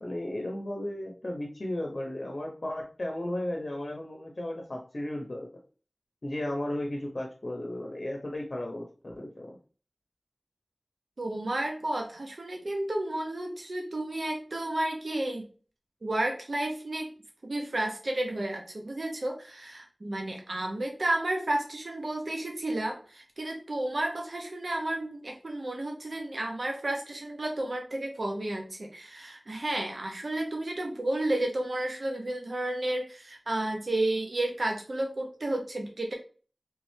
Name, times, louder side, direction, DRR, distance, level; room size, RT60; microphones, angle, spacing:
voice 1, 0.0-5.5 6.2-9.6, left 1 dB, 65° left, 1 dB, 0.6 m, -35 dB
voice 2, 11.2-15.4 16.0-17.1 17.4-36.1, right 1 dB, 85° right, 2 dB, 0.6 m, -32 dB
3.4 x 3.1 x 3.1 m, 0.38 s
wide cardioid pair, 55°, 0 cm